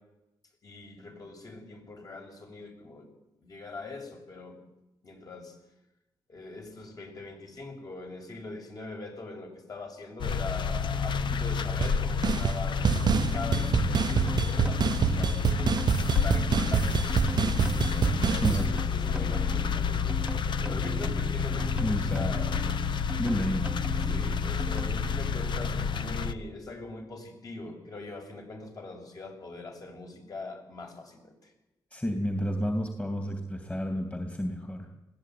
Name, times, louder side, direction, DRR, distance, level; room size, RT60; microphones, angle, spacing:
voice 1, 0.6-3.1 3.4-4.6 5.0-5.6 6.3-15.7 16.1-23.0 24.0-31.5, left 3 dB, 45° left, 3 dB, 7.0 m, -42 dB
sound 1, 10.2-26.3, left 6 dB, 65° left, 1.1 m, -29 dB
sound 2, 11.8-11.9 12.2-12.6 12.8-18.7, right 7 dB, 55° right, 0.7 m, -26 dB
sound 3, 13.2-25.3, equal, 10° right, 1.1 m, -40 dB
voice 2, 18.4-18.8 21.8-22.5 23.2-23.8 31.9-34.9, equal, 15° left, 5 dB, 2.9 m, -31 dB
21.0 x 16.5 x 9.5 m, 0.95 s
cardioid pair, 90°, 9 cm